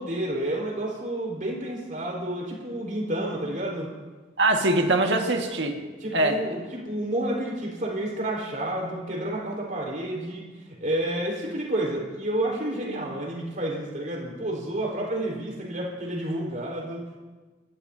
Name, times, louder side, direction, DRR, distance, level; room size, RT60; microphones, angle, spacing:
voice 1, 0.0-3.9 5.8-17.2, right 1 dB, 45° right, -3 dB, 4.4 m, -30 dB
voice 2, 4.4-5.7 6.1-6.4, right 2 dB, 75° right, 3 dB, 1.8 m, -22 dB
27.5 x 14.0 x 2.8 m, 1.3 s
head